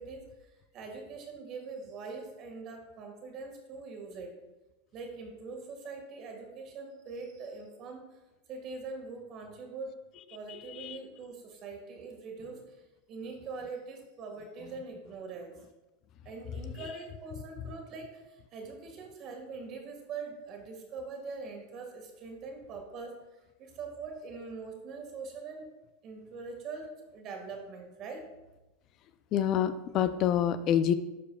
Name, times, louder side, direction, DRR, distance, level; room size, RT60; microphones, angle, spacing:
voice 1, 0.0-4.3 4.9-8.2 8.5-10.0 10.3-15.6 16.2-25.6 26.0-28.3, right 4 dB, 45° right, 2 dB, 1.6 m, -43 dB
voice 2, 29.3-30.9, left 9 dB, 45° left, 13 dB, 0.3 m, -27 dB
11.5 x 4.7 x 2.3 m, 1.1 s
supercardioid pair, 125°, 0 cm